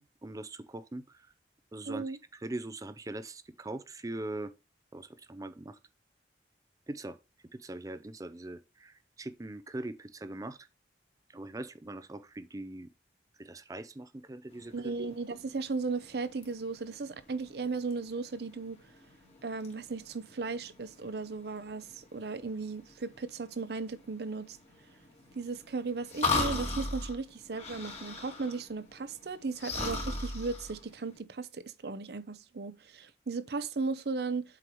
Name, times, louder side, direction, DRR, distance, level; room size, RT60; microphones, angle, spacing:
voice 1, 0.0-1.3 1.7-4.5 4.9-5.8 6.9-7.2 7.5-10.7 11.3-12.9 13.4-14.9, right 2 dB, 20° right, 0.5 m, -41 dB
voice 2, 1.9-2.2 14.7-18.8 19.4-24.6 25.3-34.4, right 4 dB, 65° right, 0.6 m, -36 dB
sound 1, 14.5-31.2, left 3 dB, 40° left, 1.8 m, -39 dB
7.7 x 4.6 x 3.0 m
head